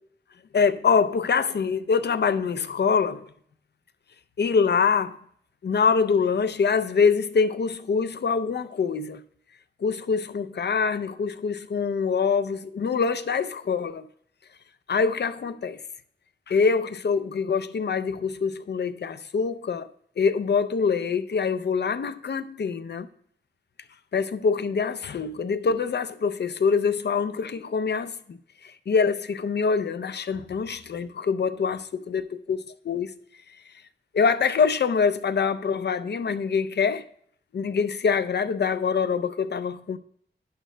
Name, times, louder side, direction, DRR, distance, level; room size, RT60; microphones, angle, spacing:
voice 1, 0.5-3.3 4.4-5.2 5.6-9.2 9.8-14.1 14.9-15.8 16.5-19.9 20.2-23.1 24.1-32.6 32.9-33.1 34.1-37.1 37.5-40.0, left 5 dB, 65° left, 0.5 m, -24 dB
11.0 x 10.0 x 2.2 m
wide cardioid pair, 80°, 18 cm